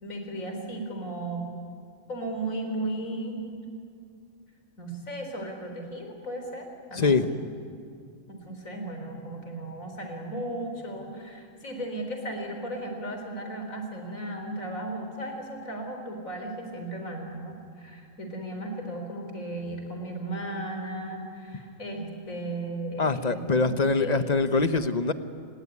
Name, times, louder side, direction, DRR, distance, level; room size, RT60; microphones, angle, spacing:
voice 1, 0.0-1.5 2.1-3.4 4.8-7.4 8.3-24.1, right 1 dB, 80° left, 4 dB, 4.4 m, -35 dB
voice 2, 6.9-7.3 23.0-25.1, left 4 dB, 35° left, 10 dB, 1.0 m, -24 dB
29.5 x 18.5 x 9.7 m, 2.3 s
omnidirectional pair, 1.4 m